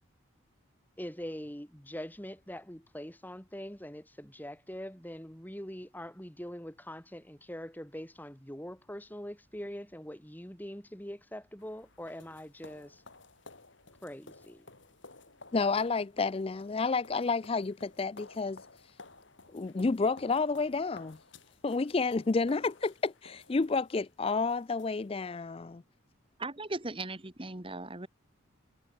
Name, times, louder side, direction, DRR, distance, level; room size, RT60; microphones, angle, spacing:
voice 1, 1.0-13.0 14.0-14.6, equal, 10° left, 2.6 m, -43 dB
sound 1, 11.6-25.3, left 3 dB, 60° left, 3.4 m, -55 dB
voice 2, 15.5-18.6 19.5-21.2 21.6-25.8, left 4 dB, 25° left, 0.4 m, -30 dB
voice 3, 26.4-28.1, right 2 dB, 25° right, 1.7 m, -38 dB
head